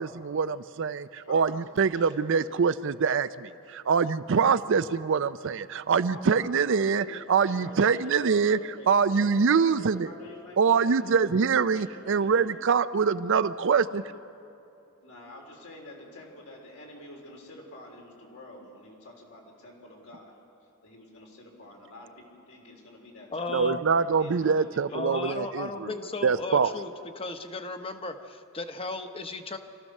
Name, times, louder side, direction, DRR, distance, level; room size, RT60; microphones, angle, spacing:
voice 1, 0.0-8.6 8.9-10.1 10.6-14.0 23.5-25.9 26.2-26.7, right 5 dB, 60° right, 13 dB, 0.5 m, -24 dB
voice 2, 1.1-2.5 6.1-12.7 13.9-14.2 15.0-20.4 20.8-25.2, left 1 dB, 75° left, 0 dB, 4.0 m, -48 dB
voice 3, 23.3-23.8 24.9-26.9 27.2-29.6, left 3 dB, 25° left, 7 dB, 1.0 m, -35 dB
28.0 x 14.5 x 6.5 m, 2.8 s
head